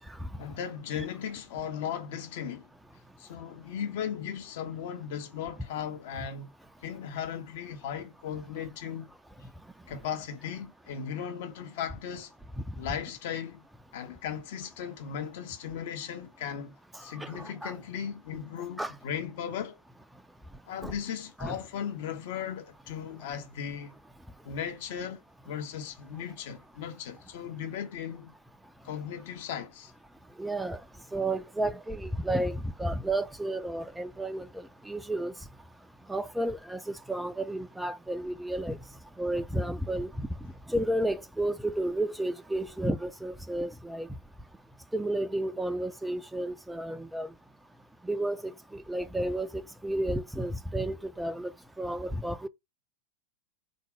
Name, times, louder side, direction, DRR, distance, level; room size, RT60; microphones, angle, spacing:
voice 1, 0.4-2.7 3.2-6.5 6.8-9.1 9.9-12.3 12.8-13.7 13.9-19.8 20.6-24.0 24.4-25.2 25.4-28.4 28.8-29.9, left 8 dB, 50° left, 1.0 m, -37 dB
voice 2, 17.2-17.7 18.8-18.9 20.8-20.9 21.4-21.6 30.4-30.8 31.1-35.3 36.1-38.8 39.2-40.3 40.7-44.1 44.9-47.3 48.0-51.5 51.8-52.5, right 1 dB, 5° right, 0.4 m, -32 dB
3.7 x 2.7 x 4.8 m
figure-of-eight pair, 90°, 0 cm